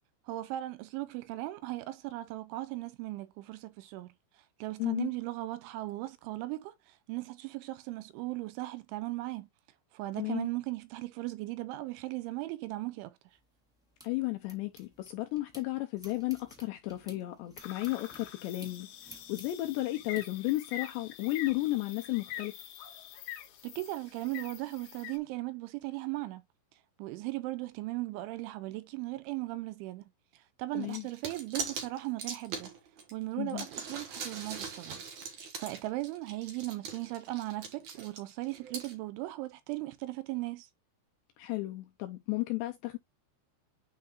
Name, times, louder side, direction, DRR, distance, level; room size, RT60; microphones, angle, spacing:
voice 1, 0.3-9.5 9.9-13.2 23.6-26.4 27.0-32.7 33.1-35.0 35.6-40.7, right 18 dB, 85° right, 2.9 m, -38 dB
voice 2, 4.8-5.1 10.2-10.5 14.0-22.5 30.7-31.1 33.4-33.7 41.4-43.0, left 18 dB, 80° left, 2.5 m, -33 dB
sound 1, 13.3-15.6 16.0-20.2, equal, ahead, 1.1 m, -54 dB
sound 2, 17.6-25.2, left 11 dB, 65° left, 2.8 m, -45 dB
sound 3, 30.8-33.1 33.5-38.9, right 5 dB, 60° right, 2.0 m, -41 dB
9.4 x 4.6 x 2.5 m
omnidirectional pair, 5.7 m